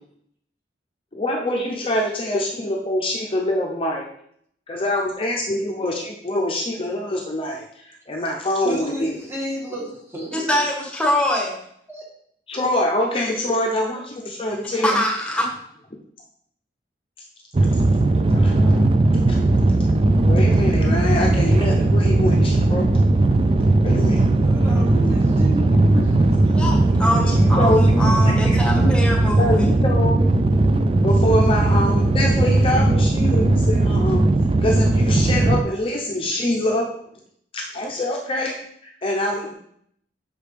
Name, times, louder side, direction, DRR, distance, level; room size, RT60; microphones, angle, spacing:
voice 1, 1.1-4.0 4.7-9.1 12.5-15.0 18.3-18.9 19.3-19.4 19.8-23.0 23.8-24.2 27.4-28.9 29.4-34.2 34.6-36.8 37.5-38.5 38.8-39.5, left 1 dB, 30° left, 0 dB, 0.7 m, -25 dB
voice 2, 8.6-10.6 11.9-12.0 24.4-27.3, equal, 15° right, -3 dB, 1.6 m, -33 dB
voice 3, 10.3-11.5 14.8-15.5 26.5-29.7, left 1 dB, 5° left, -2 dB, 1.4 m, -23 dB
sound 1, 17.5-35.6, right 2 dB, 30° right, 0.4 m, -17 dB
6.7 x 5.0 x 3.3 m, 0.67 s
head